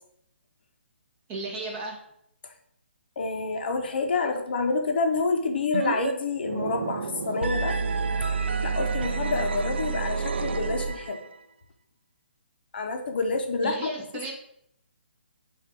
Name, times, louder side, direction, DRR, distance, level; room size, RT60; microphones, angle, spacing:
voice 1, 1.3-2.0 13.6-14.3, right 3 dB, 20° right, -1 dB, 1.3 m, -34 dB
voice 2, 3.2-7.8 8.6-11.2 12.7-13.9, left 3 dB, 55° left, 4 dB, 0.9 m, -28 dB
sound 1, 5.7-6.1 6.4-11.3, right 5 dB, 65° right, 0.5 m, -29 dB
7.3 x 2.6 x 5.1 m, 0.73 s
hypercardioid pair, 150°, 6 cm